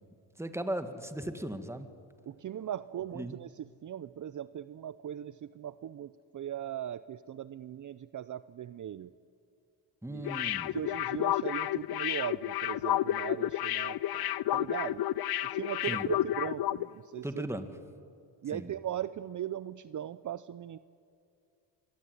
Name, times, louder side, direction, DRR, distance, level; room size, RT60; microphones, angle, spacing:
voice 1, 0.4-1.9 3.1-3.3 10.0-10.8 15.9-16.1 17.2-17.7 18.5-18.7, right 1 dB, 5° right, 8 dB, 2.2 m, -37 dB
voice 2, 2.3-9.1 10.1-10.3 10.7-15.0 15.5-17.4 18.4-20.8, right 10 dB, 45° right, 15 dB, 0.7 m, -39 dB
sound 1, 10.2-16.9 17.2-17.3, left 13 dB, 60° left, 0.7 m, -31 dB
25.0 x 24.0 x 9.7 m, 2.4 s
cardioid pair, 85°, 43 cm